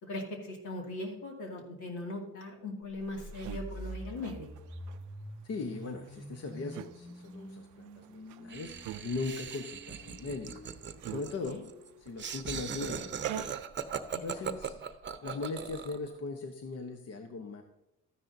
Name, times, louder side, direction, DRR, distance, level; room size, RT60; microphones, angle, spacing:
voice 1, 0.0-4.5 11.4-11.6 14.1-14.2, left 2 dB, 80° left, 1 dB, 2.4 m, -40 dB
sound 1, 2.9-12.9, equal, 20° left, 2.6 m, -47 dB
sound 2, 3.0-14.5, right 13 dB, 85° right, 0.5 m, -47 dB
voice 2, 5.4-8.7 9.0-10.5 11.1-11.6 12.0-13.5 14.2-14.8 15.2-17.6, left 3 dB, 55° left, 5 dB, 1.0 m, -39 dB
Laughter, 8.5-16.1, right 7 dB, 40° right, 0.7 m, -39 dB
13.0 x 9.9 x 2.7 m, 0.86 s
cardioid pair, 90°, 30 cm